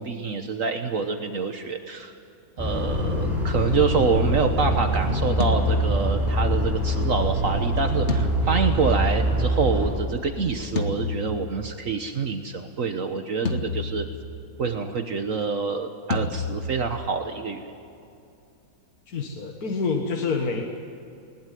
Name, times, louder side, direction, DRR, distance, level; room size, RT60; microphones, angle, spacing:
voice 1, 0.0-2.1 2.6-14.0 14.6-17.7, right 5 dB, 60° right, 6 dB, 1.5 m, -26 dB
sound 1, 2.6-9.9, equal, ahead, 7.9 m, -24 dB
sound 2, 5.4-6.6 8.1-9.6 10.8-12.0 13.5-14.7 16.1-17.2, left 3 dB, 50° left, 1.7 m, -30 dB
voice 2, 19.1-20.6, left 4 dB, 75° left, 2 dB, 2.1 m, -27 dB
21.0 x 19.5 x 9.3 m, 2.7 s
omnidirectional pair, 1.6 m